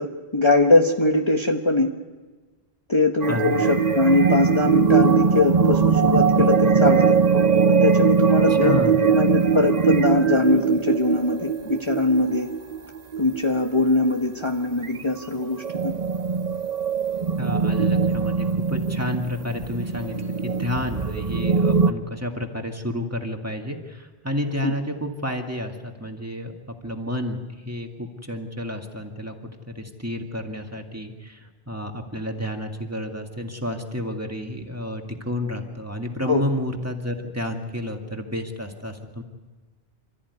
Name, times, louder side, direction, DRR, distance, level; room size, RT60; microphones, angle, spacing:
voice 1, 0.0-1.9 2.9-7.2 7.7-12.5 13.2-15.9 24.6-24.7 36.3-36.4, left 2 dB, 30° left, 1 dB, 1.3 m, -22 dB
sound 1, 3.2-13.8 14.4-14.5 14.8-15.0 15.4-21.9, right 6 dB, 45° right, 1.0 m, -21 dB
voice 2, 8.5-9.0 17.4-39.2, left 1 dB, 15° right, 2 dB, 2.1 m, -30 dB
28.0 x 14.0 x 9.6 m, 1.3 s
omnidirectional pair, 1.0 m